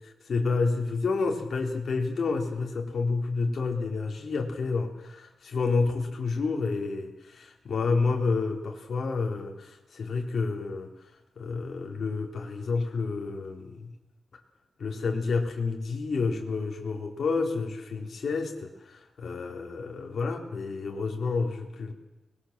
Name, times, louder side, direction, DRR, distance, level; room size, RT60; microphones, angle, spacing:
voice 1, 0.2-10.9 11.4-13.9 14.3-14.4 14.8-21.9, left 4 dB, 50° left, 2 dB, 3.9 m, -29 dB
24.5 x 21.0 x 7.5 m, 1.0 s
wide cardioid pair, 155°, 0 cm